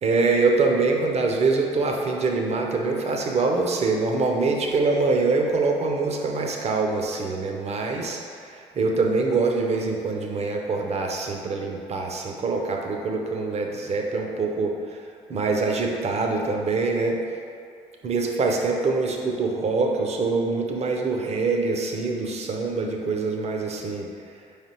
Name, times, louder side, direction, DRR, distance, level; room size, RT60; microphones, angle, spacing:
voice 1, 0.0-15.0 15.3-17.2 18.0-24.1, right 3 dB, 45° right, 1 dB, 0.6 m, -24 dB
4.6 x 3.3 x 2.9 m, 2.4 s
hypercardioid pair, 60°, 16 cm